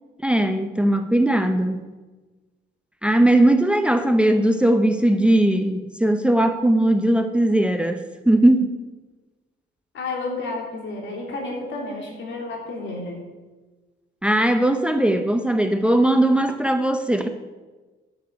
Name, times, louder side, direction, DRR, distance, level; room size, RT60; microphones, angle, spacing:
voice 1, 0.2-1.8 3.0-8.8 14.2-17.3, right 1 dB, 5° right, 7 dB, 0.7 m, -19 dB
voice 2, 9.9-13.2, left 2 dB, 70° left, 0 dB, 3.3 m, -31 dB
9.3 x 6.6 x 8.0 m, 1.2 s
cardioid pair, 90°, 20 cm